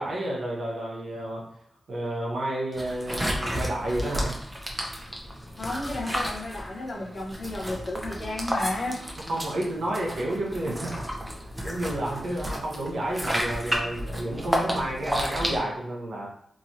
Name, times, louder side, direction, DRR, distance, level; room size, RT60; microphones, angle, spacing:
voice 1, 0.0-1.4 1.9-4.4 9.3-11.0 11.6-16.3, right 1 dB, 75° right, -3 dB, 0.7 m, -30 dB
sound 1, 2.7-15.6, equal, 15° right, 0.8 m, -32 dB
voice 2, 5.6-9.0, left 2 dB, 60° left, -1 dB, 0.8 m, -32 dB
3.0 x 2.6 x 2.6 m, 0.74 s
supercardioid pair, 40°, 0 cm